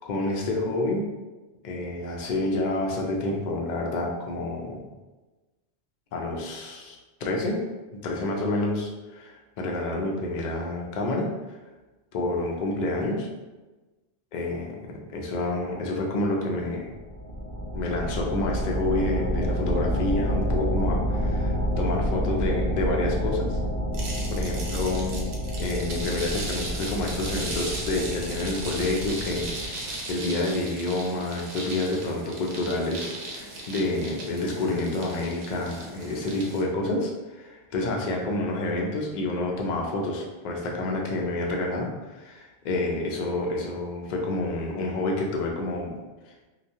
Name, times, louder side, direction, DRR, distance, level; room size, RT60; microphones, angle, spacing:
voice 1, 0.0-1.0 1.6-4.9 6.1-7.6 8.0-11.6 12.1-13.3 14.3-14.8 15.1-16.9 17.7-23.6 24.3-25.3 25.6-45.9, left 2 dB, 60° left, 0 dB, 0.5 m, -28 dB
sound 1, 16.9-29.7, equal, 20° right, 1.0 m, -29 dB
sound 2, 23.9-36.6, right 2 dB, 70° right, 0.8 m, -37 dB
2.9 x 2.2 x 2.6 m, 1.2 s
omnidirectional pair, 1.2 m